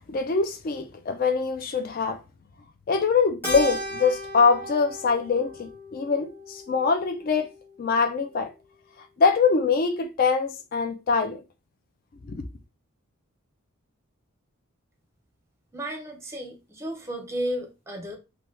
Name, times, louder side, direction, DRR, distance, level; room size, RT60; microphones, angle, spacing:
voice 1, 0.1-2.2 2.9-7.5 7.8-8.5 9.2-11.4 12.3-12.4, left 5 dB, 40° left, 0.3 m, -23 dB
Keyboard (musical), 3.4-8.0, equal, 10° left, 1.0 m, -36 dB
voice 2, 15.7-18.2, equal, 10° right, 0.6 m, -33 dB
2.8 x 2.2 x 3.1 m
head